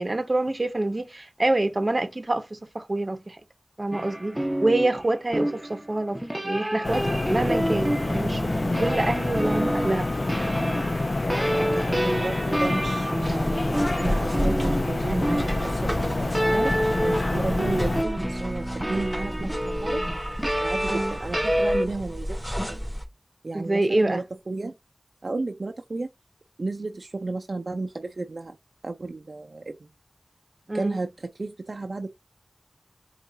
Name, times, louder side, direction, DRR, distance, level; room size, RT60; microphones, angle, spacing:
voice 1, 0.0-3.4 3.8-10.1 20.9-21.2 23.5-24.2 30.7-31.0, right 2 dB, 45° right, 0.8 m, -26 dB
sound 1, 3.9-21.9, equal, 15° right, 0.9 m, -28 dB
sound 2, 6.8-18.0, left 2 dB, 55° left, 0.3 m, -27 dB
voice 2, 11.3-20.0 20.6-22.8 23.4-24.7 25.2-26.1 26.6-28.6 28.8-29.9 30.7-32.1, right 3 dB, 70° right, 0.4 m, -33 dB
sound 3, 13.2-23.1, equal, 5° left, 2.3 m, -32 dB
4.5 x 2.4 x 3.9 m
wide cardioid pair, 60°, 0 cm